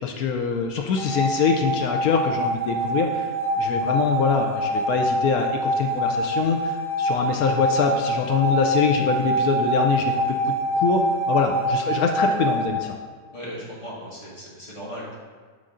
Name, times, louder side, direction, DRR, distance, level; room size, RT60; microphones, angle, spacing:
voice 1, 0.0-3.3 3.6-13.0, left 6 dB, 75° left, 3 dB, 0.8 m, -24 dB
sound 1, 1.0-12.6, right 1 dB, 45° left, 2.4 m, -25 dB
voice 2, 13.3-15.2, equal, 15° left, -7 dB, 1.6 m, -37 dB
9.2 x 3.8 x 3.7 m, 1.5 s
omnidirectional pair, 2.0 m